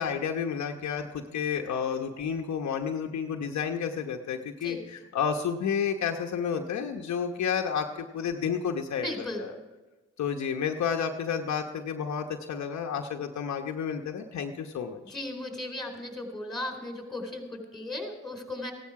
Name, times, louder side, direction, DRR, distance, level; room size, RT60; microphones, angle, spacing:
voice 1, 0.0-9.5 10.2-15.0, left 7 dB, 60° left, 3 dB, 1.0 m, -31 dB
voice 2, 9.0-9.5 15.1-18.7, left 1 dB, ahead, 3 dB, 4.1 m, -36 dB
15.5 x 12.0 x 4.8 m, 1.2 s
supercardioid pair, 65°, 32 cm